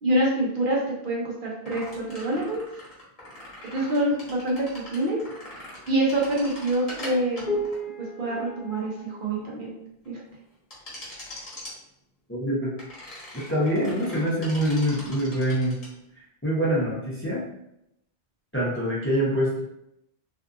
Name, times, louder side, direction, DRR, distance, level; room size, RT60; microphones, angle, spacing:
voice 1, 0.0-2.6 3.7-4.7 4.9-5.2 5.9-7.7 8.2-9.7 10.1-10.2, right 1 dB, 60° right, -3 dB, 0.7 m, -26 dB
sound 1, 1.6-9.4 10.7-11.7 12.8-15.9, equal, 35° left, 1.0 m, -38 dB
voice 2, 12.3-12.7 13.3-15.8 16.4-17.4 18.5-19.6, equal, 15° left, -7 dB, 0.5 m, -25 dB
2.6 x 2.4 x 2.5 m, 0.81 s
omnidirectional pair, 1.1 m